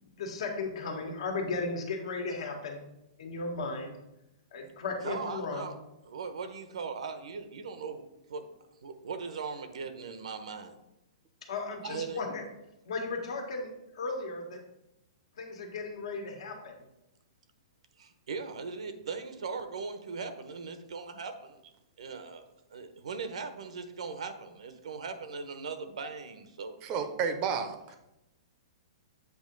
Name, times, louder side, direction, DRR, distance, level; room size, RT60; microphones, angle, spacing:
voice 1, 0.0-2.8 3.2-4.0 4.5-5.7 11.4-12.4 12.8-14.6 15.4-16.9, left 3 dB, 70° left, 3 dB, 1.5 m, -36 dB
voice 2, 5.0-5.8 6.0-8.5 8.8-10.8 11.8-12.2 18.0-21.6 22.0-22.4 22.7-27.1, right 5 dB, 90° right, 9 dB, 0.8 m, -39 dB
voice 3, 26.8-28.0, right 6 dB, 25° right, 8 dB, 0.6 m, -31 dB
8.0 x 2.9 x 5.2 m, 0.88 s
hypercardioid pair, 165°, 3 cm